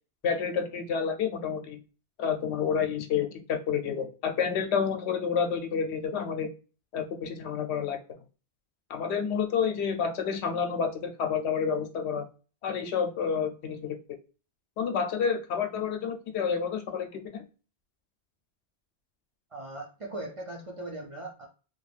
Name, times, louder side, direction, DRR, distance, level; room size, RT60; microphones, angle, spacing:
voice 1, 0.2-1.8 2.2-6.5 6.9-8.2 8.9-12.3 12.6-14.0 14.8-17.4, left 6 dB, 85° left, 6 dB, 0.8 m, -29 dB
voice 2, 19.5-21.5, right 2 dB, 45° right, 0 dB, 0.4 m, -39 dB
2.3 x 2.2 x 3.2 m, 0.35 s
omnidirectional pair, 1.1 m